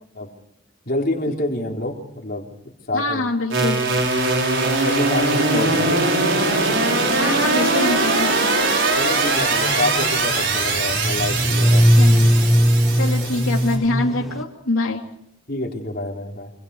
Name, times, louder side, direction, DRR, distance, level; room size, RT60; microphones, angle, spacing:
voice 1, 0.9-2.5 2.9-3.3 3.7-4.0 4.7-6.1 9.0-11.9 15.5-16.5, left 1 dB, 45° left, 1 dB, 3.8 m, -27 dB
voice 2, 2.9-3.8 5.5-5.8 7.1-8.8 12.0-12.3 12.9-15.1, left 2 dB, 85° left, 1 dB, 3.0 m, -25 dB
sound 1, 3.5-13.8, right 3 dB, 65° right, 6.5 m, -21 dB
sound 2, 9.3-14.4, equal, ahead, 1.4 m, -19 dB
27.5 x 26.0 x 4.8 m, 0.75 s
head